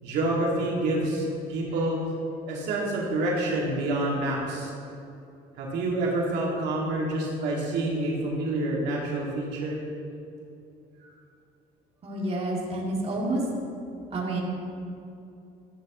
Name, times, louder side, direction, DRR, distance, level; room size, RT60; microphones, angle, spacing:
voice 1, 0.0-2.0 2.5-4.7 5.6-9.8, right 2 dB, 85° right, -4 dB, 2.2 m, -27 dB
voice 2, 12.0-13.4 14.1-14.4, right 2 dB, 35° right, -4 dB, 2.4 m, -29 dB
13.0 x 11.0 x 3.1 m, 2.7 s
cardioid pair, 110°, 17 cm